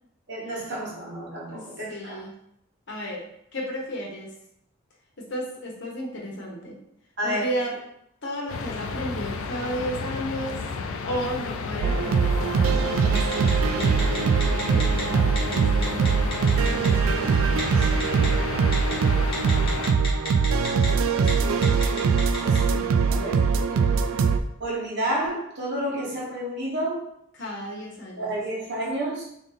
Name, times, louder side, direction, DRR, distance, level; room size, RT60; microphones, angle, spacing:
voice 1, 0.3-2.2 7.2-7.5 17.6-18.3 20.8-23.8 24.6-27.0 28.2-29.2, right 1 dB, 55° right, -5 dB, 1.2 m, -31 dB
voice 2, 1.5-2.3 2.9-3.3 3.5-4.3 5.2-6.8 7.2-7.8 8.2-10.8 11.0-16.1 22.7-24.3 27.3-28.4, equal, 60° left, -2 dB, 0.9 m, -34 dB
sound 1, 8.5-19.9, left 4 dB, 85° left, 0.4 m, -32 dB
sound 2, 11.8-24.4, right 5 dB, 80° right, 0.3 m, -22 dB
Telephone, 13.2-13.5 13.8-15.0 15.4-15.5 15.8-16.9 17.6-18.3 18.7-18.9 19.3-20.9 21.2-21.3 21.6-22.6, left 2 dB, 25° left, 1.3 m, -32 dB
3.5 x 2.6 x 3.9 m, 0.75 s
head